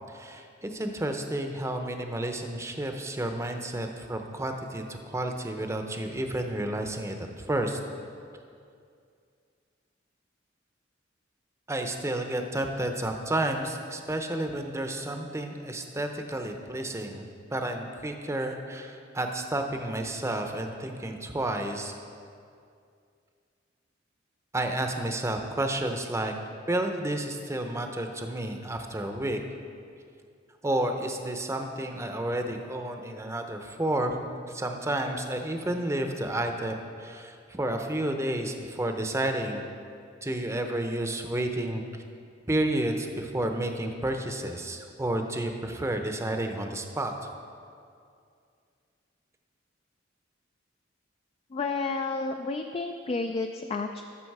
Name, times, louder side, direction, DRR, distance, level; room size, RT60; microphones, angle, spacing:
voice 1, 0.1-7.8 11.7-21.9 24.5-26.3 26.7-29.4 30.6-39.6 40.2-41.8 42.5-47.3, right 1 dB, 15° right, 5 dB, 0.7 m, -31 dB
voice 2, 51.5-54.0, left 3 dB, 30° left, 5 dB, 0.3 m, -31 dB
12.0 x 6.9 x 4.7 m, 2.3 s
head